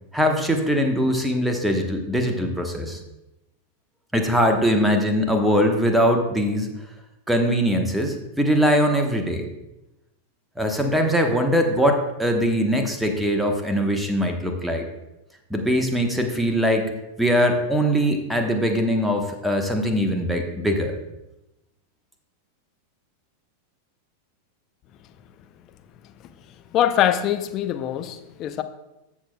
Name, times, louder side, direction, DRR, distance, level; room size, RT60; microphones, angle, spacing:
voice 1, 0.1-3.0 4.1-6.7 7.3-9.5 10.6-14.9 15.5-16.9 17.2-21.0, equal, 5° right, 4 dB, 1.0 m, -21 dB
voice 2, 26.7-28.6, left 10 dB, 35° left, 9 dB, 0.5 m, -23 dB
14.5 x 6.3 x 2.2 m, 0.95 s
figure-of-eight pair, 90°, 0 cm